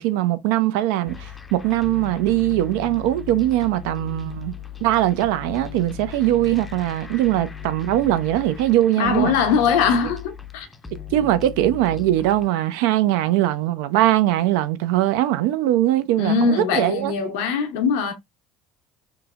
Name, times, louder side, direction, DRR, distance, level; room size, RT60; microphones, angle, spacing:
voice 1, 0.0-4.5 4.8-9.3 11.1-17.1, right 14 dB, 80° right, 0.4 m, -21 dB
sound 1, 1.1-12.5, left 9 dB, 20° left, 0.5 m, -37 dB
voice 2, 9.0-10.7 16.2-18.1, left 5 dB, 80° left, 0.7 m, -21 dB
3.0 x 2.1 x 2.3 m
supercardioid pair, 85°, 0 cm